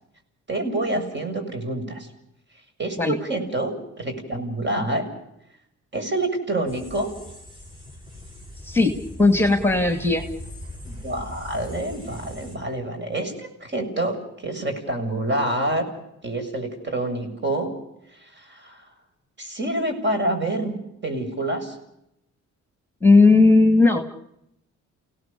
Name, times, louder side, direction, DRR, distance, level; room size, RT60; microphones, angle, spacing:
voice 1, 0.5-2.1 2.8-5.1 5.9-7.1 10.9-15.8 16.2-17.8 18.1-18.9 19.4-20.8 21.0-21.8, right 1 dB, 35° right, 6 dB, 7.1 m, -27 dB
sound 1, 6.7-12.6, left 1 dB, 15° right, 7.4 m, -40 dB
voice 2, 9.2-10.2 23.0-24.1, left 3 dB, 10° left, 7 dB, 2.5 m, -16 dB
29.5 x 18.0 x 7.0 m, 0.81 s
cardioid pair, 90°, 30 cm